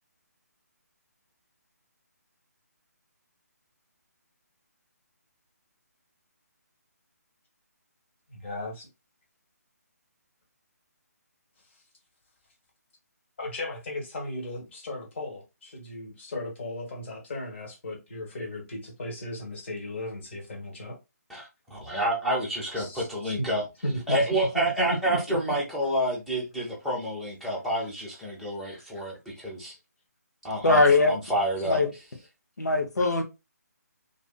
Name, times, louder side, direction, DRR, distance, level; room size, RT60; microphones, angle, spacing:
voice 1, 8.3-8.9 13.4-21.0 22.8-23.5 23.8-24.2 24.8-25.4 28.7-28.8 31.6-31.7, left 1 dB, 45° left, 1.3 m, -36 dB
voice 2, 21.7-23.6 24.1-29.7 30.4-30.8 31.1-31.8, right 1 dB, ahead, 0.7 m, -28 dB
voice 3, 30.6-31.1 31.6-31.9 32.6-33.2, left 3 dB, 80° left, 1.0 m, -21 dB
2.6 x 2.5 x 2.2 m
figure-of-eight pair, 150°, 9 cm